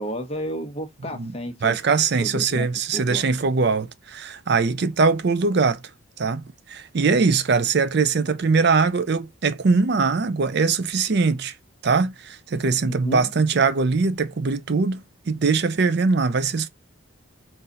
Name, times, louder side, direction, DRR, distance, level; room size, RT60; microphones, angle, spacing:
voice 1, 0.0-1.8 2.2-2.7 2.9-3.4 12.8-13.3, equal, 30° left, 0.9 m, -32 dB
voice 2, 1.6-5.8 6.2-11.5 11.8-16.7, right 4 dB, 50° right, 0.5 m, -21 dB
3.9 x 2.7 x 4.0 m
head